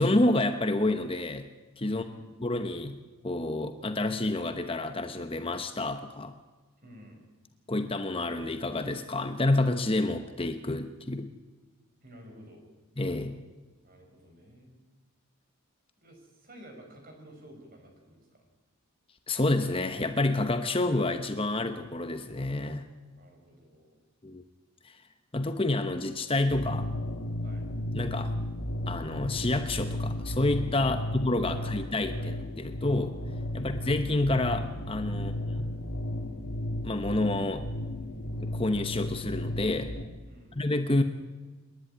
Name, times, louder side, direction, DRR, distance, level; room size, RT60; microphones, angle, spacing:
voice 1, 0.0-1.5 1.8-2.0 2.4-3.0 3.2-6.3 7.7-11.3 13.0-13.4 19.3-22.9 24.2-24.4 24.8-25.0 25.3-26.9 27.9-28.3 28.9-33.2 33.5-35.3 35.6-35.7 36.8-37.7 38.4-39.9 40.5-41.0, left 2 dB, 25° left, 8 dB, 0.9 m, -28 dB
voice 2, 1.8-2.4 6.8-7.3 12.0-12.7 13.8-14.8 16.0-18.5 23.1-24.0 27.4-27.7 30.8-31.1 31.5-31.7 32.2-32.3 33.5-33.7 35.1-35.4 40.3-40.6 41.0-41.1, equal, 40° right, 3 dB, 5.4 m, -52 dB
sound 1, 26.5-40.0, left 1 dB, 90° left, 2.5 m, -34 dB
27.5 x 11.0 x 9.9 m, 1.3 s
head